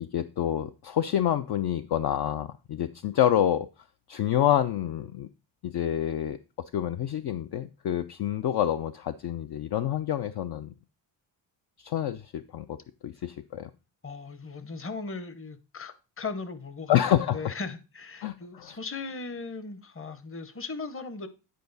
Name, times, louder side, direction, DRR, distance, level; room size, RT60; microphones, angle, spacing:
voice 1, 0.0-3.7 4.1-5.3 5.6-6.4 6.7-10.7 11.8-12.8 13.0-13.7 16.9-17.5 18.2-18.8, left 11 dB, 55° left, 0.5 m, -27 dB
voice 2, 14.0-17.0 17.3-21.3, left 4 dB, 25° left, 0.9 m, -38 dB
9.3 x 4.7 x 4.0 m
cardioid pair, 90°, 48 cm